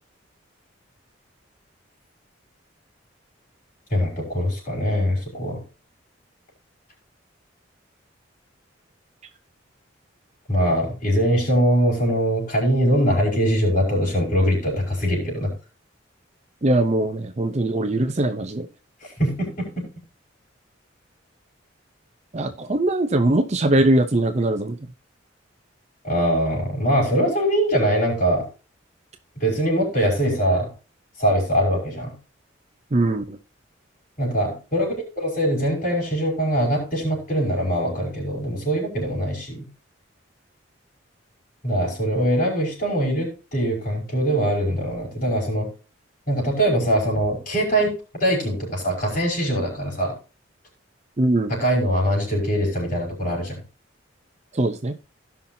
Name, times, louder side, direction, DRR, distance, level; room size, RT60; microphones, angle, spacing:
voice 1, 3.9-5.6 10.5-15.5 19.0-19.9 26.0-28.4 29.4-30.7 31.2-32.1 34.2-39.7 41.6-45.7 46.3-47.9 48.2-50.1 51.5-53.6, equal, 40° left, 5.3 m, -22 dB
voice 2, 16.6-18.7 22.3-24.8 32.9-33.4 51.2-51.5 54.5-54.9, right 1 dB, 35° right, 0.6 m, -21 dB
17.5 x 5.8 x 2.7 m
head